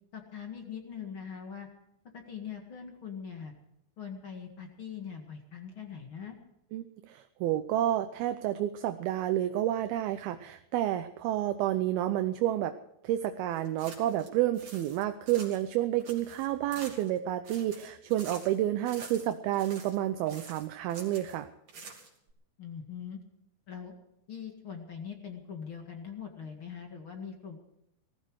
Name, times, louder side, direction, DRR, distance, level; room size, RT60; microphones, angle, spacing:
voice 1, 0.1-1.7 2.1-3.5 4.0-6.4 22.6-23.2 23.7-23.9 24.3-27.6, left 7 dB, 40° left, 3 dB, 2.0 m, -42 dB
voice 2, 6.7-12.7 13.0-21.5, right 13 dB, 75° right, 9 dB, 2.5 m, -30 dB
sound 1, 13.6-14.3 14.5-15.7 16.0-17.2 17.4-18.6 18.9-20.0 20.3-21.4 21.7-22.3, right 4 dB, 45° right, 3.9 m, -47 dB
19.0 x 15.0 x 4.8 m, 0.79 s
omnidirectional pair, 4.8 m